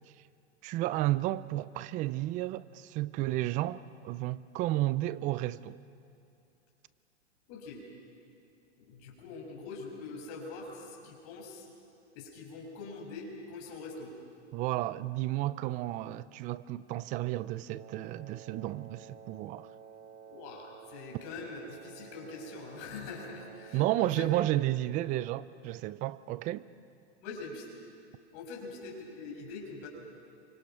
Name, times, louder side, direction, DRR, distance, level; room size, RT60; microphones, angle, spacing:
voice 1, 0.6-5.8 14.5-19.7 23.7-26.7, right 16 dB, 25° right, 0.5 m, -32 dB
voice 2, 7.5-7.8 8.8-11.7 12.1-14.1 20.3-24.3 27.2-27.7 28.3-29.9, left 4 dB, 40° left, 6.4 m, -43 dB
Wind instrument woodwind instrument, 17.7-24.2, right 7 dB, 85° right, 1.5 m, -52 dB
29.0 x 25.5 x 5.9 m
hypercardioid pair, 135°, 35 cm